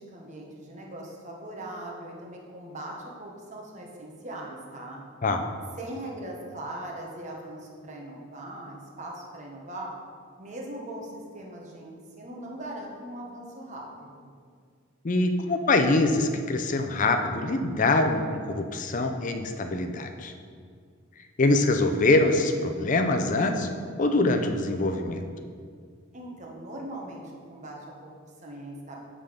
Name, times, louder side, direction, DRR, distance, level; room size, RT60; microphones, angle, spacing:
voice 1, 0.0-5.0 5.8-9.9 10.4-14.3 26.1-27.2 27.5-29.0, right 1 dB, 40° right, -1 dB, 1.0 m, -40 dB
voice 2, 15.0-20.3 21.4-23.7 24.0-25.2, left 2 dB, 40° left, 6 dB, 0.5 m, -24 dB
7.7 x 3.8 x 5.0 m, 2.1 s
head